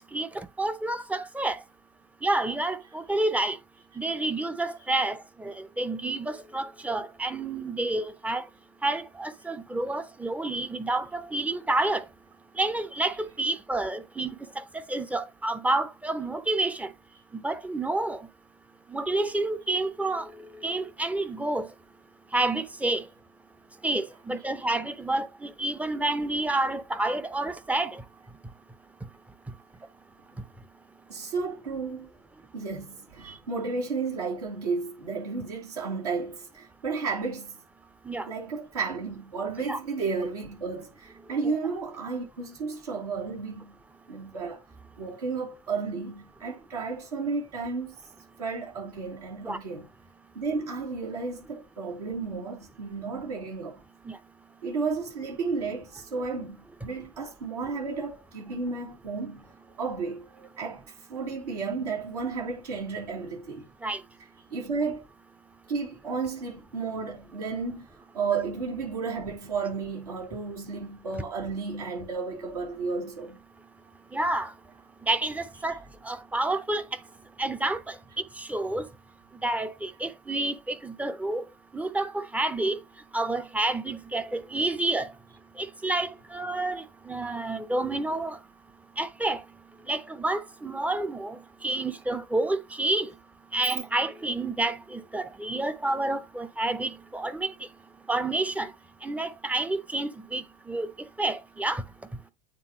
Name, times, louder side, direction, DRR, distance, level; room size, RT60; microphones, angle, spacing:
voice 1, 0.1-1.6 2.2-3.6 4.0-8.4 8.8-12.0 12.6-14.3 14.6-16.9 17.3-18.3 18.9-20.3 20.6-21.7 22.3-23.1 23.8-28.0 33.2-33.3 38.1-38.3 39.7-39.8 49.4-49.6 54.1-54.2 63.8-64.0 74.1-74.5 75.1-75.8 76.0-76.8 77.4-77.9 78.4-78.8 79.4-81.4 81.7-82.8 83.1-85.1 85.6-88.4 89.0-89.4 89.9-93.1 93.5-97.5 98.1-98.7 99.0-100.9 101.2-101.8, right 2 dB, 5° right, 0.7 m, -29 dB
voice 2, 31.1-32.1 32.5-37.6 38.3-43.8 44.1-44.6 45.0-48.0 48.4-49.9 50.3-53.8 54.6-63.7 64.5-65.0 65.7-67.8 68.1-73.4, right 4 dB, 75° right, 3.0 m, -33 dB
9.1 x 3.7 x 2.9 m
figure-of-eight pair, 75°, 20 cm